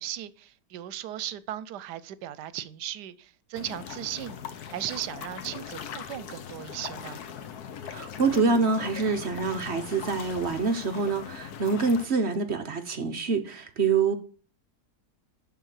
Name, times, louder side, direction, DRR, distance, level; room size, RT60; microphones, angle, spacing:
voice 1, 0.0-4.4 4.7-7.2, right 12 dB, 85° right, 1.2 m, -37 dB
sound 1, 3.5-12.1, left 8 dB, 70° left, 1.4 m, -40 dB
voice 2, 7.9-14.2, right 4 dB, 50° right, 1.1 m, -26 dB
11.0 x 3.8 x 7.4 m
omnidirectional pair, 1.7 m